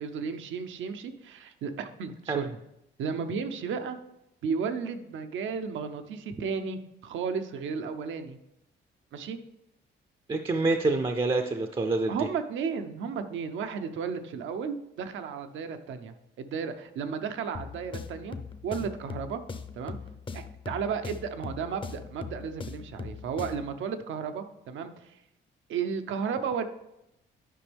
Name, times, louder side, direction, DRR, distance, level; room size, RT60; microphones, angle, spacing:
voice 1, 0.0-2.6 3.0-4.0 4.4-8.4 9.1-9.4 12.1-18.4 18.6-19.4 19.7-20.0 20.3-25.2 25.7-26.6, right 6 dB, 75° right, 8 dB, 0.8 m, -33 dB
voice 2, 10.3-12.3, right 3 dB, 25° right, 6 dB, 0.5 m, -27 dB
sound 1, 17.5-23.8, left 4 dB, 25° left, 0.6 m, -40 dB
10.0 x 5.2 x 3.4 m, 0.85 s
cardioid pair, 90°, 20 cm